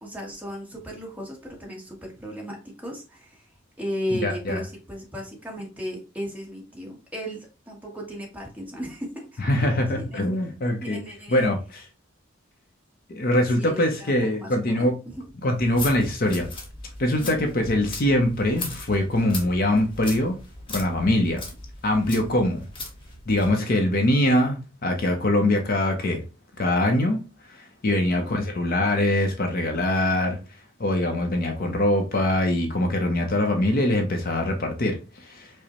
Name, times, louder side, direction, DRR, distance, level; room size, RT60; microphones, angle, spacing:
voice 1, 0.0-3.4 3.8-9.5 10.1-10.2 10.8-11.5 13.5-15.3 17.1-17.4 22.1-22.4 27.9-28.3 31.6-31.8, equal, 5° right, 1.1 m, -36 dB
voice 2, 4.1-4.6 9.4-11.0 11.3-11.9 13.1-15.0 15.4-16.5 17.0-20.4 20.7-21.4 21.8-22.6 23.3-26.2 26.6-27.2 27.5-30.4 30.8-35.5, left 1 dB, 45° left, 0.6 m, -23 dB
sound 1, 15.5-23.6, left 2 dB, 25° left, 1.0 m, -38 dB
4.9 x 2.1 x 2.8 m
head